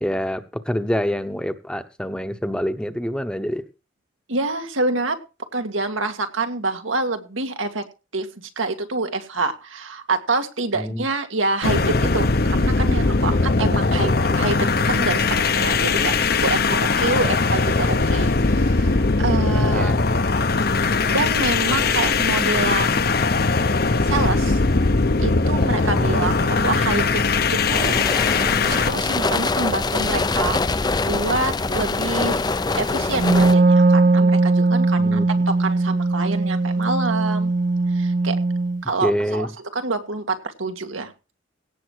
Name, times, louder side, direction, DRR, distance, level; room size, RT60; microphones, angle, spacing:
voice 1, 0.0-3.7 10.7-11.0 14.0-14.4 17.2-17.6 19.7-20.0 26.0-26.4 35.0-35.3 39.0-39.5, equal, 5° left, 9 dB, 0.9 m, -26 dB
voice 2, 4.3-5.2 5.5-7.8 8.1-20.0 21.1-23.1 24.0-24.6 25.2-27.2 27.5-27.9 28.3-32.4 32.7-35.2 35.5-37.5 37.9-38.4 38.8-39.5 39.7-41.1, right 3 dB, 90° right, 6 dB, 2.1 m, -26 dB
sound 1, 11.6-29.0, left 3 dB, 50° left, 0.8 m, -20 dB
sound 2, 27.7-33.5, left 3 dB, 20° left, 0.5 m, -24 dB
Wind instrument woodwind instrument, 33.1-38.8, right 3 dB, 45° right, 0.6 m, -19 dB
17.0 x 7.3 x 4.7 m, 0.31 s
head